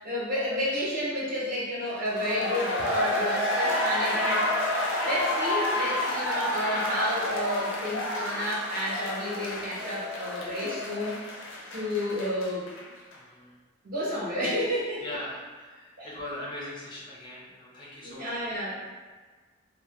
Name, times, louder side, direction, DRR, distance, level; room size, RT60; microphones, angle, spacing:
voice 1, 0.0-4.4 5.0-11.1 11.7-12.7 13.8-15.0 16.0-16.1 18.0-18.8, equal, 45° right, -7 dB, 0.7 m, -31 dB
sound 1, 2.0-12.8 13.1-13.2, left 1 dB, 80° left, 0.4 m, -29 dB
voice 2, 13.1-13.6 15.0-18.8, left 1 dB, 25° left, -6 dB, 0.4 m, -41 dB
2.3 x 2.1 x 2.8 m, 1.4 s
head